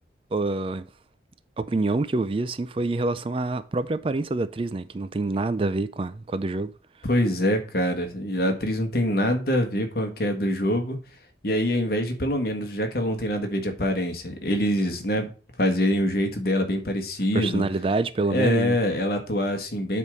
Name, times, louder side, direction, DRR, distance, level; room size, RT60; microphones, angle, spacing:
voice 1, 0.3-0.8 1.6-6.7 17.3-18.8, right 2 dB, 30° right, 0.3 m, -26 dB
voice 2, 7.0-11.0 11.4-15.3 15.6-17.6 18.3-20.0, equal, 55° left, 1.4 m, -25 dB
8.2 x 3.6 x 6.2 m
head